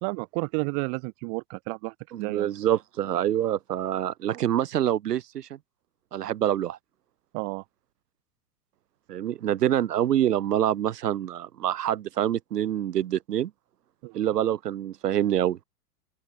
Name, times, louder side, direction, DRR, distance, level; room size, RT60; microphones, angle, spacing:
voice 1, 0.0-2.5 7.3-7.6 14.0-14.2, right 37 dB, 50° right, 2.5 m, -32 dB
voice 2, 2.1-5.6 6.1-6.8 9.1-13.5 14.1-15.6, right 11 dB, 80° right, 1.7 m, -26 dB
open air
hypercardioid pair, 105°, 47 cm